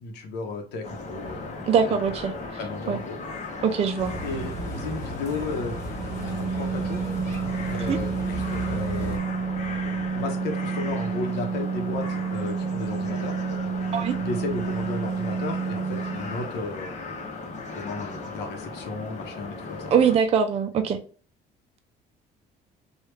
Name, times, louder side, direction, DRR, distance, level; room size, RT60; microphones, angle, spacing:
voice 1, 0.0-2.0 2.6-3.2 4.2-7.0 7.7-9.4 10.1-13.4 14.2-17.0 17.7-19.9, left 3 dB, 85° left, 0.8 m, -34 dB
sound 1, 0.8-20.2, left 3 dB, 45° left, 0.8 m, -37 dB
voice 2, 1.7-2.3 2.9-3.0 3.6-4.1 7.7-8.0 13.9-14.2 19.9-21.0, right 7 dB, 40° right, 0.4 m, -22 dB
sound 2, 4.0-9.2, right 1 dB, 20° left, 1.6 m, -35 dB
Organ, 5.9-16.5, right 6 dB, 60° right, 0.8 m, -30 dB
3.1 x 2.3 x 3.2 m
cardioid pair, 110°, 17 cm